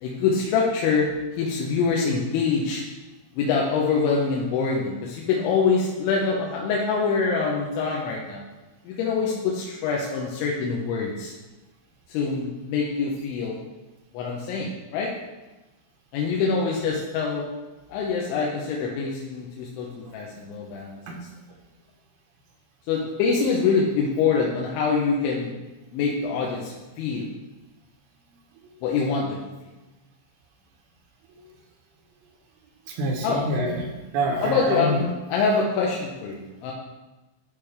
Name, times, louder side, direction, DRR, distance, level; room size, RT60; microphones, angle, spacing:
voice 1, 0.0-2.8 3.4-8.4 8.9-11.3 12.1-13.6 14.1-15.1 16.1-17.5 17.9-21.0 22.9-25.5 25.9-27.3 28.8-29.4 33.2-33.4 34.4-36.7, left 5 dB, 80° left, -2 dB, 3.0 m, -25 dB
voice 2, 32.9-33.8 34.1-35.0, right 1 dB, 75° right, 0 dB, 2.2 m, -26 dB
11.5 x 5.2 x 3.3 m, 1.1 s
omnidirectional pair, 5.8 m